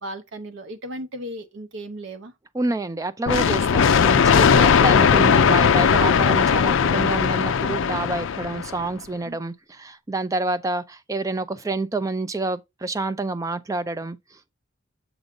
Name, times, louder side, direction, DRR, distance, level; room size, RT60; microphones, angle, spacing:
voice 1, 0.0-2.3 9.2-9.4, right 1 dB, 60° right, 0.8 m, -35 dB
voice 2, 2.5-14.4, right 2 dB, 15° right, 0.3 m, -28 dB
sound 1, 3.3-8.9, left 6 dB, 60° left, 0.4 m, -18 dB
7.0 x 2.6 x 5.2 m
head